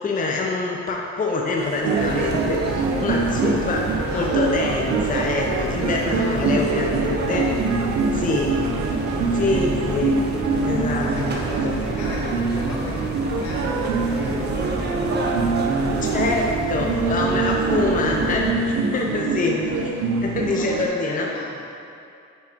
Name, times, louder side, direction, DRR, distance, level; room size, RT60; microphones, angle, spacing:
voice 1, 0.0-7.5 8.1-8.5 9.3-10.2 10.6-11.2 11.6-11.7 16.0-18.5 18.9-19.7 20.2-21.3, left 3 dB, 25° left, -1 dB, 0.6 m, -25 dB
sound 1, 1.6-16.5, right 2 dB, 35° right, 0.8 m, -33 dB
sound 2, 1.8-20.9, right 4 dB, 70° right, 0.6 m, -24 dB
sound 3, 2.0-18.5, equal, 5° right, 0.8 m, -32 dB
voice 2, 4.1-4.8 5.1-5.6 8.4-8.7 9.1-9.6 11.0-15.3 19.4-19.6 20.4-21.5, left 2 dB, 70° left, -4 dB, 1.4 m, -37 dB
9.9 x 3.7 x 2.9 m, 2.6 s
cardioid pair, 90°, 30 cm